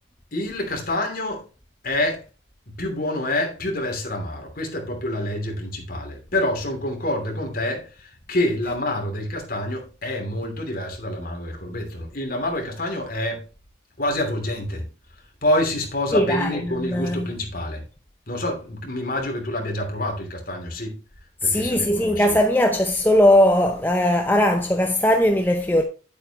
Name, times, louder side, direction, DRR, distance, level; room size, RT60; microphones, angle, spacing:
voice 1, 0.3-1.5 1.8-2.2 2.7-13.4 14.0-14.9 15.4-17.8 18.3-21.0 21.4-22.4, left 1 dB, 45° left, 3.0 m, -27 dB
voice 2, 16.1-17.3 21.4-25.8, left 1 dB, 10° left, 0.7 m, -19 dB
9.6 x 8.6 x 3.0 m
head